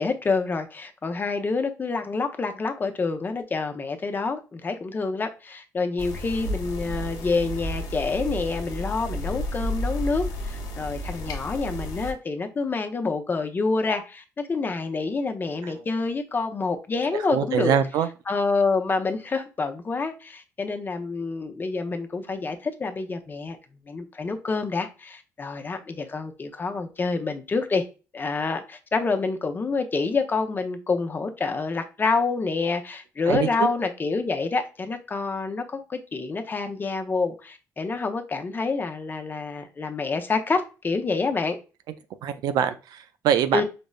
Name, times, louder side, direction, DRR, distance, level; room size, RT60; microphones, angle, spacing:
voice 1, 0.0-17.7 18.3-23.6 23.9-27.8 28.1-41.6 43.5-43.6, left 4 dB, 30° left, 0.5 m, -27 dB
sound 1, 6.0-12.1, equal, 75° left, 0.9 m, -32 dB
voice 2, 17.3-18.1 33.3-33.7 42.2-43.6, right 9 dB, 80° right, 0.4 m, -24 dB
5.1 x 2.0 x 2.3 m
cardioid pair, 100°, 7 cm